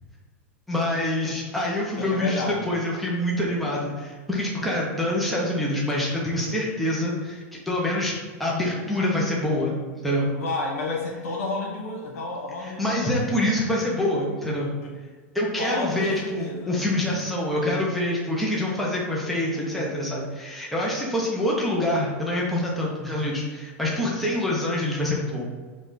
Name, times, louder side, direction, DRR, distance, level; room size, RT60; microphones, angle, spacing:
voice 1, 0.7-8.1 8.4-9.8 10.0-10.3 12.6-14.7 15.3-25.5, left 1 dB, ahead, -5 dB, 0.7 m, -26 dB
voice 2, 2.0-2.7 10.3-13.5 14.8-15.0 15.6-16.8 19.5-20.0, left 2 dB, 80° left, -2 dB, 1.4 m, -32 dB
5.2 x 2.4 x 3.9 m, 1.4 s
supercardioid pair, 150°, 8 cm